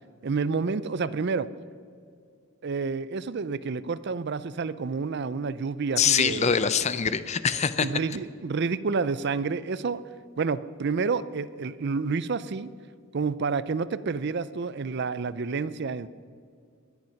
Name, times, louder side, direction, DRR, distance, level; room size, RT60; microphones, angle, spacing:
voice 1, 0.2-1.5 2.6-6.5 7.8-10.0 10.4-12.7 13.1-16.1, right 4 dB, 50° right, 16 dB, 0.5 m, -29 dB
voice 2, 6.0-7.9, left 6 dB, 30° left, 13 dB, 0.5 m, -24 dB
20.0 x 10.5 x 5.8 m, 2.2 s
head